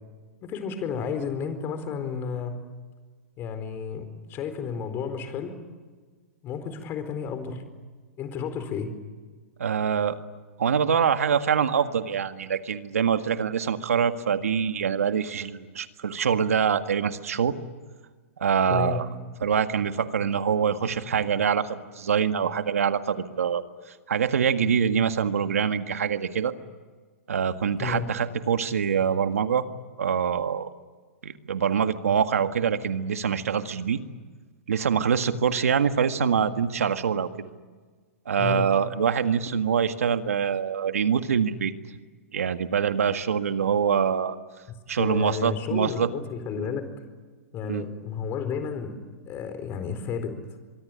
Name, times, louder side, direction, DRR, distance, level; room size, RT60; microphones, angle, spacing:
voice 1, 0.4-2.6 3.4-5.6 6.4-7.6 8.2-8.9 18.7-19.1 27.8-28.1 38.4-38.7 44.7-46.9 47.5-49.0 49.3-50.3, left 6 dB, 30° left, 10 dB, 4.2 m, -32 dB
voice 2, 9.6-10.2 10.6-17.5 18.4-19.1 19.4-23.6 24.1-26.5 27.3-29.7 30.0-30.7 31.2-34.0 34.7-37.3 38.3-41.7 42.3-44.4 44.9-46.1 46.6-46.7 47.7-47.8, right 7 dB, 90° right, 9 dB, 1.8 m, -24 dB
24.0 x 24.0 x 10.0 m, 1.5 s
hypercardioid pair, 140°, 8 cm